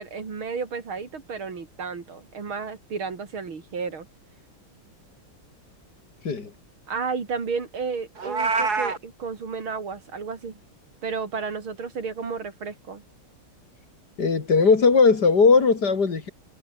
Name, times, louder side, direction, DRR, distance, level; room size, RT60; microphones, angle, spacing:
voice 1, 0.0-4.1 6.9-10.6 11.0-13.0, right 5 dB, 80° right, 4.0 m, -32 dB
Meow, 8.2-9.0, right 4 dB, 50° right, 3.6 m, -25 dB
voice 2, 14.2-16.3, left 4 dB, 50° left, 3.0 m, -18 dB
omnidirectional pair, 2.2 m